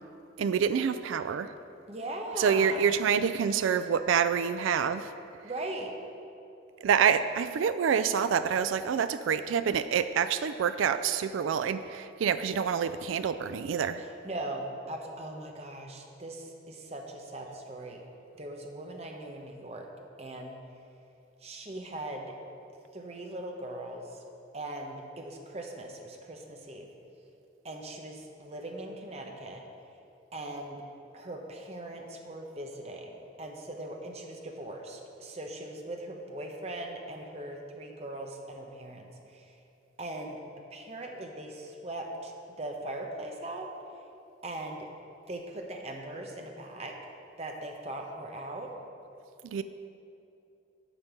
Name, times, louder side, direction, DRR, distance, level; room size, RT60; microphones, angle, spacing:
voice 1, 0.4-1.5 2.4-5.1 6.8-14.0 49.4-49.6, right 7 dB, 90° right, 12 dB, 0.3 m, -27 dB
voice 2, 1.9-2.8 5.4-5.9 14.0-18.0 18.4-19.9 20.2-20.6 21.4-22.4 22.9-24.1 24.5-26.9 27.6-29.6 30.3-30.8 31.1-39.5 40.0-40.4 40.7-42.3 42.6-43.7 44.4-44.9 45.3-47.0 47.4-48.7, right 1 dB, 35° right, 2 dB, 0.9 m, -40 dB
9.0 x 5.2 x 7.3 m, 2.7 s
head